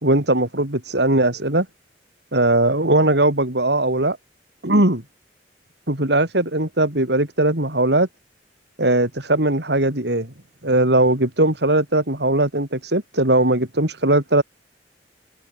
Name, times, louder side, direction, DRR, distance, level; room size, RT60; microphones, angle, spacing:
voice 1, 0.0-1.7 2.3-4.2 4.6-5.0 5.9-8.1 8.8-10.3 10.6-14.4, right 1 dB, 70° right, 4.6 m, -19 dB
head